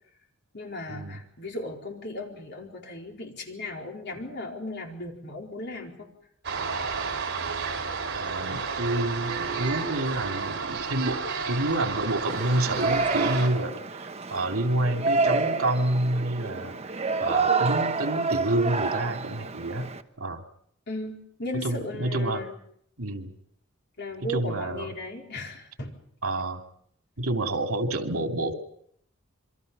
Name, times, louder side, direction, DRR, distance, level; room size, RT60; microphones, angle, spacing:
voice 1, 0.5-6.1 20.9-22.6 24.0-25.9, left 1 dB, 55° left, 1 dB, 4.5 m, -36 dB
sound 1, 6.4-13.5, right 5 dB, 55° right, 4.7 m, -31 dB
voice 2, 8.1-16.8 17.2-19.9 20.2-20.4 21.6-22.4 23.0-23.3 24.3-24.9 26.2-26.6 27.2-28.5, right 1 dB, 80° right, 4 dB, 2.7 m, -28 dB
Yell, 12.3-20.0, right 4 dB, 30° right, 1.1 m, -28 dB
27.5 x 24.0 x 5.5 m, 0.68 s
head